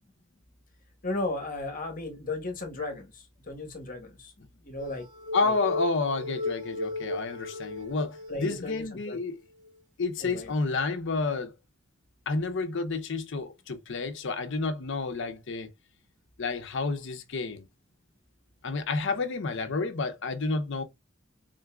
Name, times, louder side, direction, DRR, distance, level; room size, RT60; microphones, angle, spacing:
voice 1, 1.0-5.1 5.4-5.5 8.3-9.2 10.2-10.5, left 2 dB, 45° left, 1.2 m, -35 dB
sound 1, 4.8-8.6 9.1-9.2 9.6-9.7, left 2 dB, 45° right, 1.7 m, -35 dB
voice 2, 5.3-9.4 10.0-11.5 12.3-15.7 16.4-17.6 18.6-20.8, left 3 dB, 65° left, 0.7 m, -30 dB
3.8 x 3.6 x 2.2 m
head